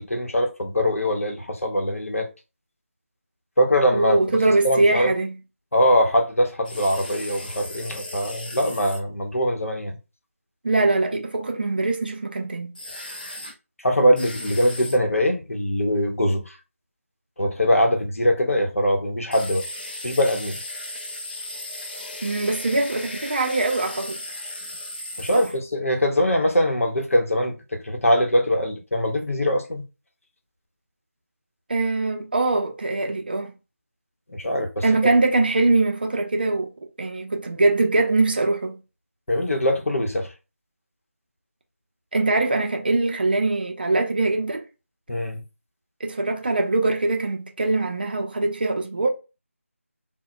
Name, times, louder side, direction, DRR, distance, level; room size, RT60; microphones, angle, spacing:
voice 1, 0.0-2.3 3.6-4.2 4.6-5.1 5.7-10.0 13.8-16.4 17.4-19.6 20.0-20.6 25.2-29.8 34.3-34.8 39.3-40.3 45.1-45.4, equal, 70° left, 0.8 m, -22 dB
voice 2, 3.9-5.3 10.6-12.7 22.2-24.2 25.3-25.4 31.7-33.5 34.8-36.7 37.0-38.8 42.1-44.6 46.0-49.1, right 2 dB, 40° right, 0.5 m, -22 dB
sound 1, 6.6-9.0 12.8-13.5 14.2-15.0 19.3-25.6, left 1 dB, 40° left, 0.4 m, -36 dB
2.1 x 2.1 x 3.7 m
figure-of-eight pair, 165°, 8 cm